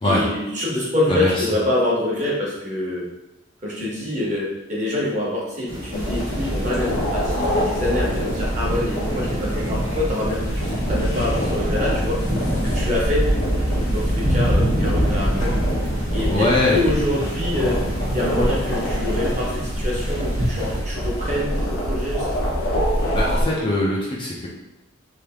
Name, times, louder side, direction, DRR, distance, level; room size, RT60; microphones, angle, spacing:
voice 1, 0.0-3.0 3.6-10.4 10.7-12.2 12.6-13.2 13.7-15.6 16.1-16.3 16.7-17.8 18.1-21.5 21.9-22.5, left 1 dB, 35° right, -5 dB, 1.0 m, -25 dB
voice 2, 1.1-1.5 16.3-16.8 23.1-24.5, left 1 dB, 25° left, -4 dB, 0.5 m, -21 dB
sound 1, 5.7-20.8, equal, 90° right, 1.0 m, -28 dB
sound 2, 5.9-23.4, equal, 85° left, 1.0 m, -25 dB
3.4 x 2.6 x 3.4 m, 0.96 s
head